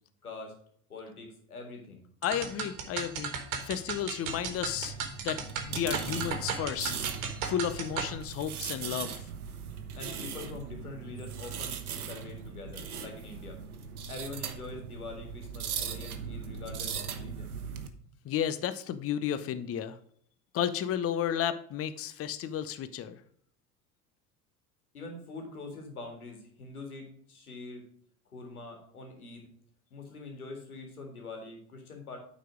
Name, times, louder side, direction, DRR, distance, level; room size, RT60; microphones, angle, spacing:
voice 1, 0.2-0.5 0.9-2.0 10.0-11.8 12.1-13.6 14.1-17.5 24.9-27.8 28.3-29.5 29.9-32.2, left 3 dB, 85° left, 3 dB, 2.0 m, -44 dB
voice 2, 2.2-3.3 3.6-4.9 5.2-6.9 7.4-9.1 18.2-20.0 20.5-23.2, left 9 dB, 35° left, 12 dB, 0.7 m, -32 dB
sound 1, 2.2-8.1, right 6 dB, 65° right, 1.5 m, -36 dB
sound 2, 4.2-17.9, right 7 dB, 80° right, 0.9 m, -39 dB
9.1 x 4.2 x 5.0 m, 0.62 s
figure-of-eight pair, 70°, 43 cm